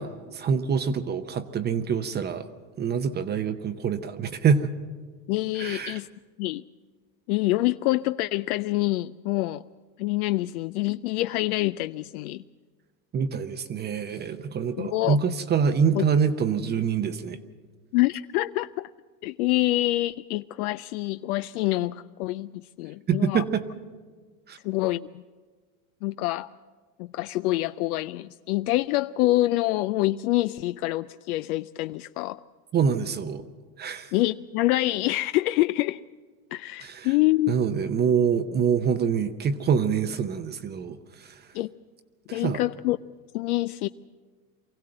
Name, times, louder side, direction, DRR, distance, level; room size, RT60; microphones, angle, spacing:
voice 1, 0.0-2.5 2.8-4.7 5.6-6.0 13.1-17.4 23.1-23.6 24.5-24.6 32.7-33.4 33.8-34.1 36.8-37.1 37.5-41.3 42.3-42.6, right 6 dB, 20° right, 10 dB, 0.6 m, -25 dB
voice 2, 5.3-6.1 6.4-6.6 7.3-9.6 10.0-12.4 14.8-15.2 15.9-16.1 17.9-18.9 19.2-23.4 24.6-25.2 26.0-26.5 27.0-32.4 34.1-36.0 36.5-37.5 41.5-41.7 42.3-43.0 43.3-43.9, left 17 dB, 65° left, 13 dB, 0.5 m, -26 dB
24.0 x 15.5 x 7.7 m, 1.5 s
supercardioid pair, 130°, 48 cm